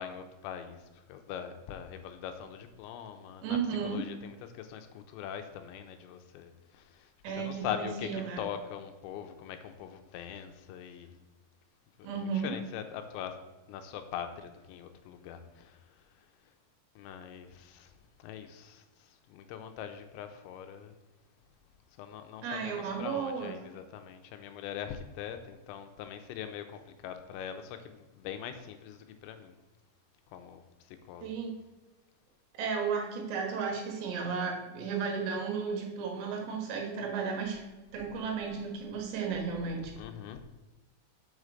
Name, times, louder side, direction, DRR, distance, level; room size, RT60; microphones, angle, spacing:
voice 1, 0.0-3.6 3.8-11.2 12.0-13.4 13.7-16.3 17.0-17.9 18.2-20.9 22.0-29.6 30.3-31.3 40.0-40.5, left 9 dB, 85° left, 7 dB, 2.9 m, -42 dB
voice 2, 3.4-4.0 7.2-8.4 12.0-12.5 22.4-23.5 31.2-31.5 32.6-37.6 37.9-39.9, right 5 dB, 75° right, 1 dB, 3.4 m, -34 dB
6.2 x 5.7 x 6.5 m, 1.1 s
omnidirectional pair, 5.2 m